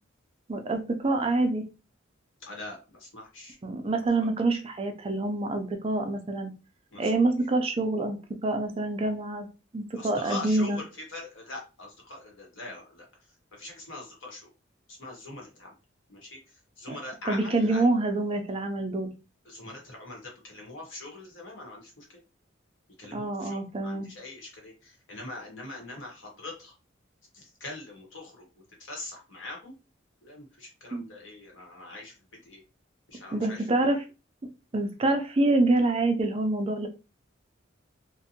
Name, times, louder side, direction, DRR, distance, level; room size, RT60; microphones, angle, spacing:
voice 1, 0.5-1.6 3.6-6.5 7.0-9.5 9.7-10.8 16.9-17.0 17.3-19.1 23.1-24.1 30.9-31.0 33.3-34.0 34.7-36.9, right 2 dB, 30° right, 5 dB, 0.4 m, -26 dB
voice 2, 2.5-3.6 4.2-4.3 6.9-7.1 9.9-13.1 13.5-14.5 14.9-15.7 16.1-17.8 19.4-22.2 23.0-26.8 27.3-29.7 30.2-32.1 32.4-32.6 33.1-34.0, left 2 dB, 65° left, 1 dB, 1.0 m, -42 dB
2.6 x 2.1 x 2.7 m, 0.30 s
head